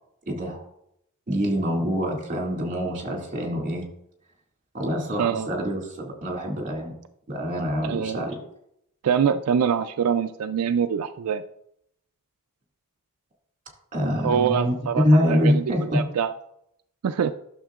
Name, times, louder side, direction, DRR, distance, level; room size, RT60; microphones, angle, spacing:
voice 1, 0.3-0.6 1.3-3.9 4.7-6.9 7.3-8.4 13.9-14.7 15.0-16.0, equal, 35° right, 0 dB, 2.1 m, -25 dB
voice 2, 5.2-5.5 7.8-8.2 9.0-11.4 14.2-15.6 15.9-16.3 17.0-17.4, right 7 dB, 85° right, 8 dB, 0.4 m, -24 dB
11.5 x 6.5 x 2.4 m, 0.74 s
head